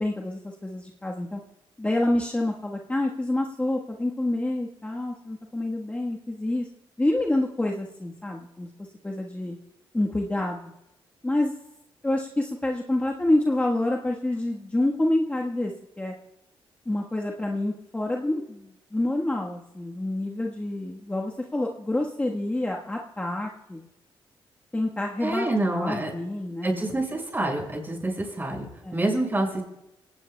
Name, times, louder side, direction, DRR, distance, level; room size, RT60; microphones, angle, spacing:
voice 1, 0.0-1.4 1.8-6.7 7.0-8.7 9.0-9.6 9.9-10.7 11.2-11.5 12.0-15.7 16.0-16.1 16.8-23.9 24.7-27.0 28.8-29.0, left 1 dB, 15° left, -1 dB, 1.3 m, -27 dB
voice 2, 25.2-26.1 26.6-28.7 28.9-29.6, right 1 dB, 20° right, 0 dB, 5.9 m, -27 dB
28.5 x 17.5 x 2.2 m, 0.86 s
cardioid pair, 90°, 9 cm